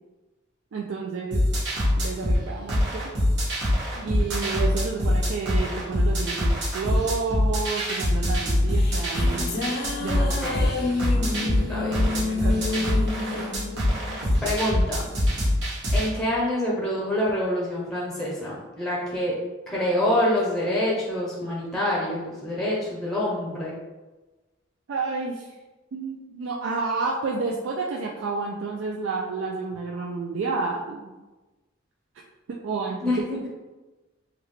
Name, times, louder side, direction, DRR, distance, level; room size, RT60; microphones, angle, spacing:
voice 1, 0.7-1.4 2.0-3.1 3.9-9.7 10.0-10.6 11.0-13.0 13.3-13.5 19.7-20.0 24.9-25.5 25.9-31.1 32.5-33.3, right 4 dB, 85° right, -2 dB, 0.4 m, -31 dB
sound 1, 1.3-16.1, left 1 dB, 65° right, 1.2 m, -24 dB
sound 2, 8.7-15.1, left 3 dB, 55° left, 0.5 m, -30 dB
voice 2, 10.1-10.9 11.7-12.1 14.4-15.1 15.9-19.4 19.7-23.7 33.0-33.4, left 1 dB, 5° left, -5 dB, 0.6 m, -26 dB
3.5 x 2.3 x 3.1 m, 1.1 s
head